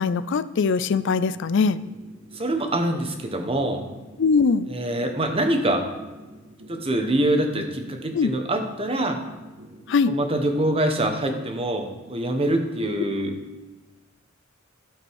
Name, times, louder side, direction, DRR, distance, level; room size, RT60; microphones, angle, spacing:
voice 1, 0.0-1.8 4.2-4.7 8.1-8.3 9.9-10.1, left 5 dB, 60° left, 16 dB, 0.4 m, -21 dB
sound 1, 0.8-10.7, right 1 dB, 60° right, 1.9 m, -46 dB
voice 2, 2.3-3.8 4.7-5.8 6.7-9.2 10.1-13.4, right 1 dB, 30° right, 5 dB, 1.2 m, -24 dB
12.5 x 5.1 x 6.4 m, 1.2 s
head